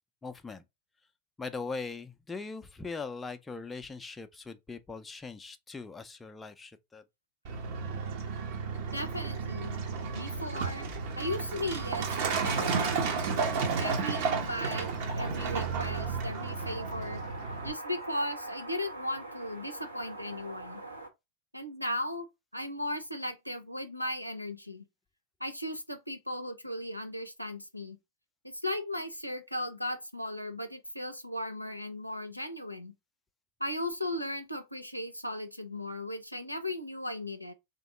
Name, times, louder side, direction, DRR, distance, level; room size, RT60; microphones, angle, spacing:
voice 1, 0.2-0.6 1.4-7.0, left 4 dB, 10° left, 0.4 m, -40 dB
Truck, 7.4-17.7, right 5 dB, 50° right, 0.8 m, -32 dB
voice 2, 8.9-9.8 10.1-10.9 11.2-13.1 13.8-14.9 15.2-17.2 17.6-20.8 21.5-22.3 22.5-24.8 25.4-28.0 28.4-32.9 33.6-37.5, left 1 dB, 90° left, 0.5 m, -36 dB
sound 1, 11.9-21.1, right 1 dB, 85° right, 1.0 m, -45 dB
3.5 x 2.9 x 3.8 m
figure-of-eight pair, 90°, 0 cm